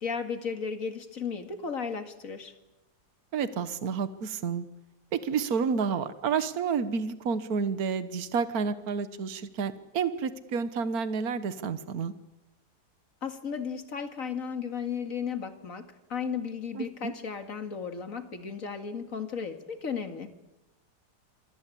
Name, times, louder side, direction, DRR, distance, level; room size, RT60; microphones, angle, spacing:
voice 1, 0.0-2.5 13.2-20.3, left 6 dB, 55° left, 7 dB, 2.5 m, -35 dB
voice 2, 3.3-4.7 5.1-12.1 16.7-17.1, right 6 dB, 65° right, 12 dB, 1.7 m, -30 dB
27.5 x 22.5 x 8.6 m, 0.97 s
omnidirectional pair, 1.7 m